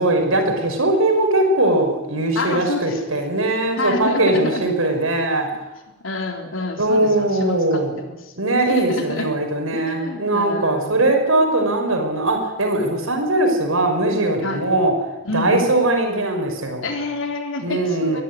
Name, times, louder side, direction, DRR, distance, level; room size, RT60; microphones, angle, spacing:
voice 1, 0.0-5.5 6.8-8.0 8.4-14.9 15.3-16.9 17.6-18.2, right 2 dB, 85° right, 4 dB, 5.7 m, -20 dB
voice 2, 2.4-3.0 3.8-4.7 6.0-8.3 8.7-9.3 9.7-11.1 14.4-14.6 15.2-15.7 16.8-18.2, left 2 dB, 75° left, 3 dB, 3.9 m, -28 dB
23.0 x 13.5 x 9.9 m, 1.0 s
head